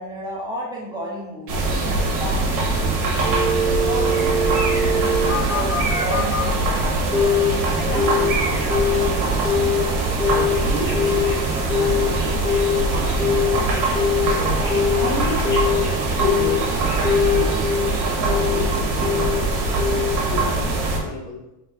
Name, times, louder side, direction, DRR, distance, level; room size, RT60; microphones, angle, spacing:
voice 1, 0.0-3.0 3.6-7.2, equal, 10° right, -5 dB, 0.8 m, -33 dB
sound 1, 1.5-21.0, right 2 dB, 40° right, 1.1 m, -22 dB
sound 2, 1.5-19.2, right 8 dB, 80° right, 0.6 m, -39 dB
Telephone, 3.2-6.5 7.1-7.5 7.8-9.1 9.4-9.8 10.2-13.6 13.9-14.3 14.6-16.7 17.0-17.9 18.3-18.7 19.0-19.4 19.8-20.2 20.5-20.6, left 4 dB, 20° left, 1.1 m, -22 dB
voice 2, 9.7-14.7 15.3-15.7 16.1-21.4, left 4 dB, 45° left, 1 dB, 0.8 m, -35 dB
3.3 x 3.3 x 3.6 m, 0.93 s
supercardioid pair, 125°, 47 cm